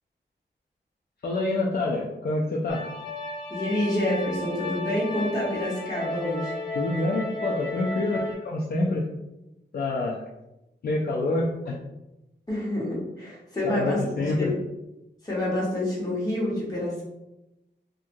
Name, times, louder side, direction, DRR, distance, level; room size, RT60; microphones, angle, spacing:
voice 1, 1.2-2.9 6.7-9.1 9.7-10.2 10.8-11.7 13.6-14.5, left 2 dB, 55° left, -3 dB, 0.4 m, -27 dB
sound 1, 2.7-8.3, left 2 dB, 80° left, 0.7 m, -34 dB
voice 2, 3.5-6.5 12.5-14.6 15.2-17.0, left 1 dB, 20° left, -7 dB, 1.1 m, -28 dB
2.8 x 2.5 x 2.5 m, 0.93 s
wide cardioid pair, 150°, 19 cm